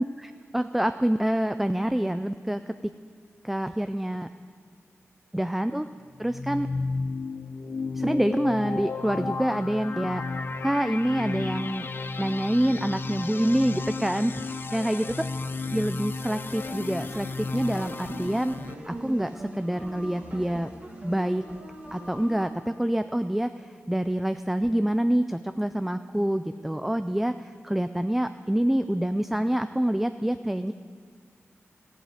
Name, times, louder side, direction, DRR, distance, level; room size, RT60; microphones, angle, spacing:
voice 1, 0.0-2.9 3.4-4.3 5.3-5.9 6.2-6.7 8.0-10.2 10.6-11.9 12.2-15.2 15.6-18.5 18.9-20.7 21.0-21.5 21.9-30.7, right 1 dB, 5° right, 10 dB, 0.3 m, -26 dB
sound 1, 6.2-18.7, left 4 dB, 45° left, 0.6 m, -33 dB
sound 2, 16.4-22.5, right 1 dB, 30° right, 2.0 m, -41 dB
16.0 x 8.2 x 8.8 m, 2.1 s
wide cardioid pair, 150°, 5 cm